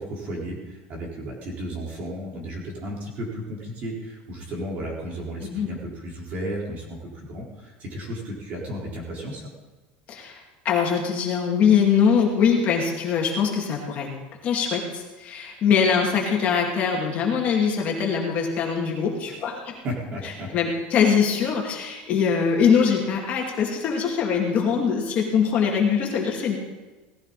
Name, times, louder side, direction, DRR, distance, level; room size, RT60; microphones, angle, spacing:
voice 1, 0.0-9.5 19.3-19.4 19.8-20.5, equal, 35° right, -3 dB, 4.3 m, -34 dB
voice 2, 10.1-10.4 10.6-14.1 14.4-19.8 20.5-26.6, left 6 dB, 30° left, -1 dB, 2.4 m, -22 dB
18.0 x 15.0 x 4.2 m, 1.2 s
cardioid pair, 170°, 5 cm